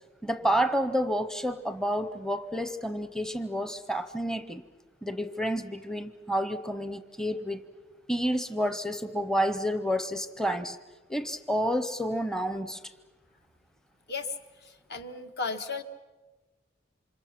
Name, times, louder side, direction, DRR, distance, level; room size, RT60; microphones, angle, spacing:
voice 1, 0.2-4.6 5.0-7.7 8.1-10.8 11.1-12.9, equal, 5° left, 10 dB, 0.7 m, -29 dB
voice 2, 14.1-15.8, left 4 dB, 60° left, 7 dB, 1.5 m, -35 dB
29.0 x 26.0 x 5.9 m, 1.2 s
head